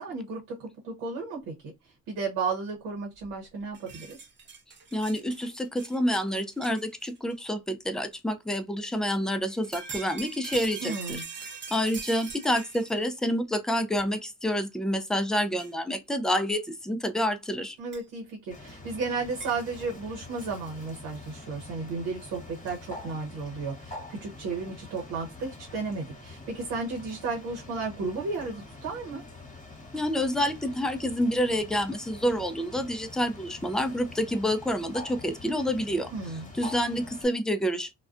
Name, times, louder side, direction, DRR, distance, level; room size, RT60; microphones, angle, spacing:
voice 1, 0.0-1.5 1.8-4.2 10.8-11.2 17.8-29.2 36.1-36.5, right 4 dB, 85° right, 0.8 m, -34 dB
sound 1, 3.2-3.3 3.6-7.3 8.1-8.2 9.5-13.1 14.0-14.1 15.6-15.7 17.9-18.0 19.4-19.5, right 5 dB, 35° right, 0.6 m, -42 dB
voice 2, 4.9-11.2 11.7-17.8 29.9-36.1 36.5-37.9, equal, ahead, 0.3 m, -28 dB
Bird, 18.5-37.3, left 2 dB, 25° left, 1.0 m, -45 dB
2.3 x 2.2 x 2.4 m
cardioid pair, 80°, 33 cm